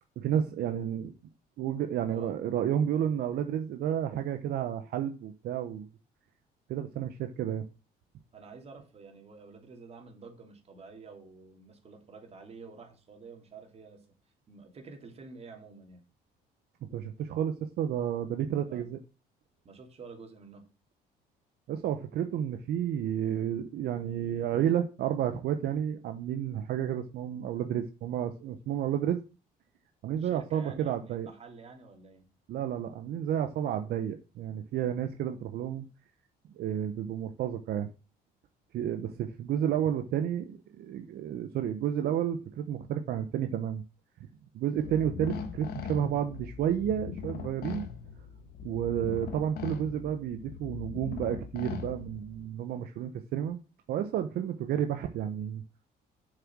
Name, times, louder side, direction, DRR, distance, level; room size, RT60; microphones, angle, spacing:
voice 1, 0.2-1.1 1.6-5.9 6.7-7.6 16.9-19.0 21.7-29.2 30.0-31.3 32.5-35.9 36.5-37.9 38.7-43.8 44.5-47.9 48.6-53.6 53.9-55.6, right 10 dB, 70° right, 1.0 m, -31 dB
voice 2, 8.3-14.0 14.5-16.1 18.6-18.8 19.6-20.7 30.2-32.3, right 4 dB, 35° right, 3.1 m, -49 dB
sound 1, 44.8-52.5, left 7 dB, 65° left, 1.6 m, -40 dB
7.6 x 6.7 x 6.1 m
cardioid pair, 110°, 17 cm